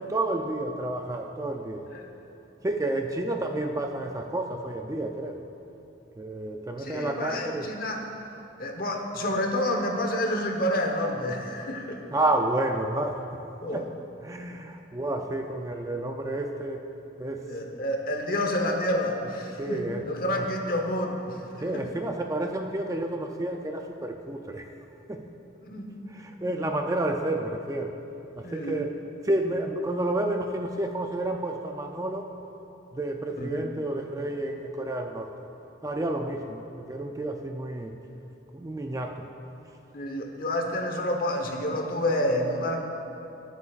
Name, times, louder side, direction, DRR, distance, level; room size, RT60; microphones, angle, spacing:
voice 1, 0.1-1.9 2.6-5.4 6.2-7.7 12.1-13.2 13.7-13.9 14.2-16.8 17.2-17.5 19.6-20.1 20.3-20.5 21.6-24.6 25.1-25.3 26.1-27.9 28.4-29.0 29.2-32.3 32.9-35.3 35.8-36.6 36.9-37.9 38.5-39.1, right 1 dB, 15° right, 3 dB, 0.4 m, -30 dB
voice 2, 6.8-8.0 8.6-12.0 13.6-13.8 17.4-21.8 25.6-25.9 28.4-28.8 33.4-33.5 39.9-42.8, left 1 dB, 45° left, 2 dB, 1.0 m, -29 dB
22.5 x 8.1 x 2.4 m, 3.0 s
head